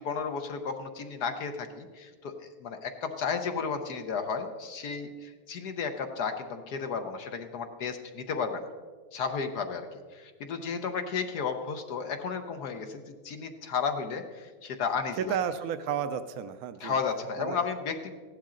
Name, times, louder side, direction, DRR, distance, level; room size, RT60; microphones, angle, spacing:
voice 1, 0.0-8.7 9.1-9.9 10.1-15.4 16.8-18.1, left 5 dB, 60° left, 6 dB, 1.2 m, -33 dB
voice 2, 15.2-17.0 17.4-17.7, right 8 dB, 80° right, 11 dB, 0.8 m, -32 dB
15.5 x 11.5 x 3.8 m, 1.5 s
omnidirectional pair, 2.2 m